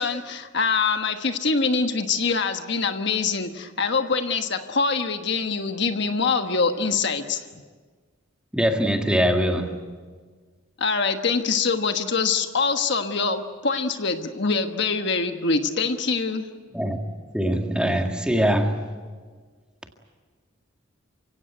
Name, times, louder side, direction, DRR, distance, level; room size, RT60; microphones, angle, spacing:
voice 1, 0.0-7.4 10.8-16.5, left 4 dB, 55° left, 7 dB, 1.3 m, -24 dB
voice 2, 8.5-9.8 16.7-17.0 17.3-18.9, equal, 5° right, 3 dB, 1.9 m, -22 dB
29.0 x 17.0 x 9.3 m, 1.5 s
head